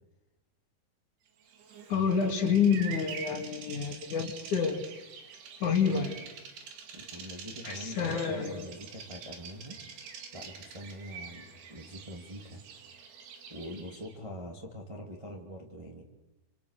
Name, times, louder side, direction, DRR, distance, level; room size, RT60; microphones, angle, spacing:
Bird vocalization bird call bird song, 1.5-14.2, right 6 dB, 85° right, 4.5 m, -46 dB
voice 1, 1.9-4.8 5.6-6.2 7.6-8.6, left 6 dB, 55° left, 4 dB, 3.4 m, -28 dB
voice 2, 6.9-9.8 10.3-12.6 13.5-16.0, equal, 10° right, 0 dB, 1.8 m, -44 dB
28.0 x 27.0 x 6.7 m, 0.97 s
omnidirectional pair, 4.5 m